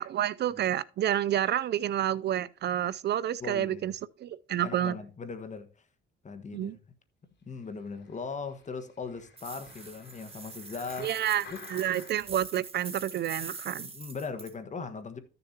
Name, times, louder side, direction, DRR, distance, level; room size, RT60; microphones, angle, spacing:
voice 1, 0.0-3.9 4.2-5.0 6.5-6.8 11.0-11.4 11.7-13.9, right 11 dB, 55° right, 0.4 m, -29 dB
voice 2, 3.4-3.8 4.6-5.7 6.2-6.8 7.4-11.1 11.5-11.6 13.8-15.2, left 4 dB, 35° left, 1.4 m, -39 dB
sound 1, 7.8-12.4 13.0-13.1, left 5 dB, 60° left, 3.6 m, -51 dB
sound 2, 9.4-14.5, right 4 dB, 30° right, 1.8 m, -44 dB
14.0 x 6.9 x 2.8 m
cardioid pair, 90°, 20 cm